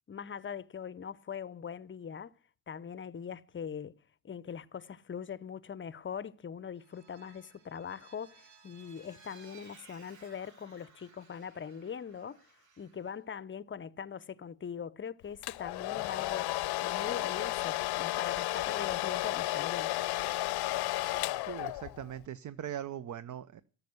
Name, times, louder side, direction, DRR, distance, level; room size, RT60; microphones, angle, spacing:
voice 1, 0.1-2.3 2.7-3.9 4.2-12.4 12.8-19.9, left 7 dB, 25° left, 0.7 m, -41 dB
Vehicle, 6.7-13.1, right 5 dB, 85° right, 6.2 m, -59 dB
Domestic sounds home sounds, 15.4-22.1, left 17 dB, 60° left, 0.7 m, -33 dB
voice 2, 21.4-23.6, right 10 dB, 40° right, 0.8 m, -40 dB
13.0 x 7.0 x 9.7 m
hypercardioid pair, 60°, 45 cm